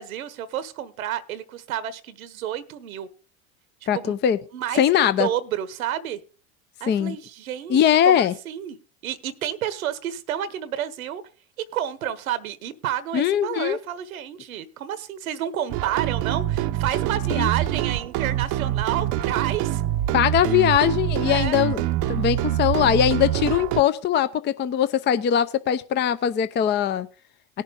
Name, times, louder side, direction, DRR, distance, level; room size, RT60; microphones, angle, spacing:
voice 1, 0.0-3.1 3.9-4.1 4.5-6.2 6.8-8.8 9.0-11.2 11.7-19.8 20.6-20.8 21.2-21.6, right 11 dB, 85° right, 15 dB, 1.1 m, -30 dB
voice 2, 3.9-4.4 4.8-5.3 6.9-7.2 7.7-8.3 13.1-13.8 17.3-17.5 20.1-27.1, left 10 dB, 25° left, 14 dB, 0.6 m, -21 dB
sound 1, 15.7-23.8, right 13 dB, 50° right, 0.7 m, -25 dB
17.5 x 6.6 x 3.6 m, 0.35 s
hypercardioid pair, 95°, 41 cm